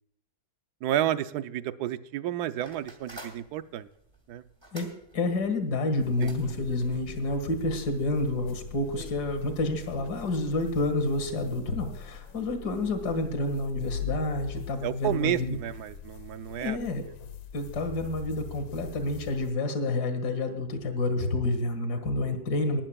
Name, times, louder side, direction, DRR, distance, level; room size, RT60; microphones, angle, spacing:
voice 1, 0.8-3.9 4.3-4.4 6.2-6.3 14.8-16.8, right 12 dB, 70° right, 12 dB, 1.0 m, -31 dB
sound 1, 2.6-8.5, right 1 dB, 15° right, 2.2 m, -51 dB
voice 2, 5.1-15.6 16.6-17.0 17.5-22.8, left 2 dB, 55° left, 8 dB, 2.3 m, -29 dB
sound 2, 6.0-19.5, left 6 dB, 75° left, 1.7 m, -42 dB
20.5 x 12.0 x 2.3 m, 0.76 s
omnidirectional pair, 2.2 m